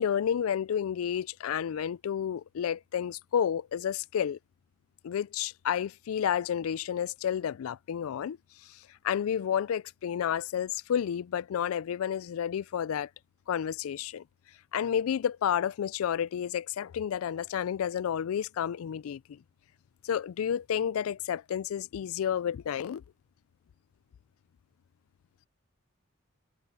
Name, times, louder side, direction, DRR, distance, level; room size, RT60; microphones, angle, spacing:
voice 1, 0.0-4.4 5.0-8.4 8.7-8.8 9.0-13.1 13.5-14.2 14.7-19.4 20.0-23.0, left 8 dB, 85° left, 0.3 m, -30 dB
head